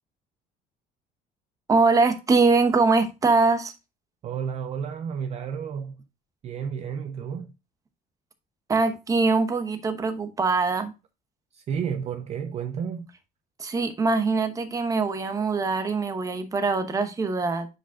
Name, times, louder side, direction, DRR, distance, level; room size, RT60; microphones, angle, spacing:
voice 1, 1.7-3.7 8.7-10.9 13.6-17.7, right 3 dB, 20° right, 0.9 m, -23 dB
voice 2, 4.2-6.0 6.4-7.5 11.5-13.1, right 7 dB, 40° right, 0.5 m, -31 dB
9.7 x 5.0 x 2.3 m
cardioid pair, 150°, 17 cm